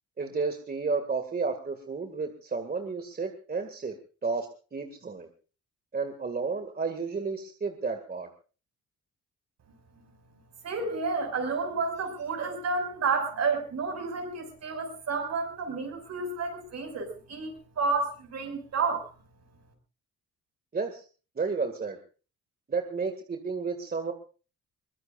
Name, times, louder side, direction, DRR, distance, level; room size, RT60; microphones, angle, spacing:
voice 1, 0.2-3.9 4.2-5.3 5.9-8.3 20.7-21.0 21.4-22.0 22.7-24.1, right 4 dB, 30° right, 6 dB, 2.2 m, -32 dB
voice 2, 10.6-19.1, right 4 dB, 60° right, 5 dB, 6.1 m, -30 dB
22.5 x 20.0 x 2.5 m, 0.35 s
cardioid pair, 90°, 30 cm